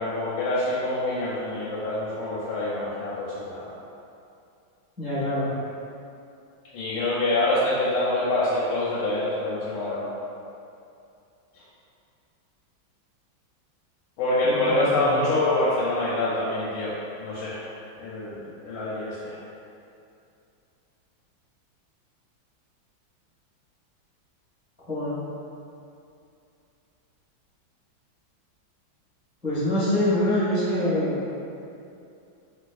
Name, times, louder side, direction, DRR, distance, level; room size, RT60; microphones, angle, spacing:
voice 1, 0.0-3.7 6.7-10.1 14.2-17.7 18.0-19.4, left 2 dB, 90° left, -9 dB, 1.4 m, -26 dB
voice 2, 5.0-5.5 14.4-15.3 24.9-25.2 29.4-31.3, left 1 dB, 5° right, -12 dB, 0.9 m, -25 dB
3.2 x 3.0 x 2.3 m, 2.6 s
omnidirectional pair, 2.2 m